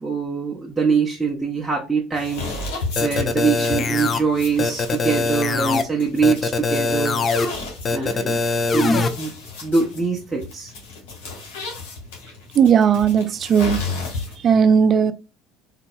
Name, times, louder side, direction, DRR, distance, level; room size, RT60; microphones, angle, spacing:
voice 1, 0.0-7.2 7.9-8.4 8.7-9.3 9.6-10.7, right 5 dB, 10° right, 0.7 m, -23 dB
sound 1, 2.1-14.5, left 3 dB, 90° left, 1.8 m, -34 dB
sound 2, 3.0-4.2 4.6-5.8 6.2-7.5 7.8-9.1, left 3 dB, 30° left, 0.5 m, -22 dB
voice 2, 12.6-13.8 14.4-15.1, right 7 dB, 40° right, 0.4 m, -16 dB
3.9 x 2.8 x 2.2 m
supercardioid pair, 105°, 0 cm